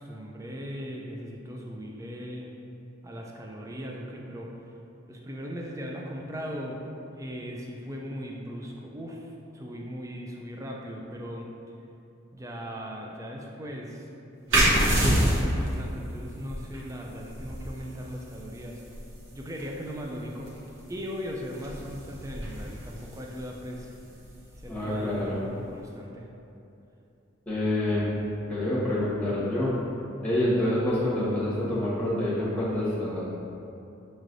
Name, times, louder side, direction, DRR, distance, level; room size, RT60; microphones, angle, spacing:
voice 1, 0.0-2.5 3.0-4.7 5.1-6.8 7.2-11.5 12.3-14.1 14.5-18.8 19.3-20.5 20.9-23.9 24.6-26.3, equal, 15° right, -1 dB, 0.3 m, -38 dB
sound 1, 14.5-25.8, right 1 dB, 70° right, 0.9 m, -30 dB
voice 2, 24.7-25.4 27.5-28.1 28.5-29.7 30.2-33.2, left 1 dB, 5° left, -9 dB, 1.0 m, -27 dB
6.5 x 3.1 x 2.6 m, 2.8 s
head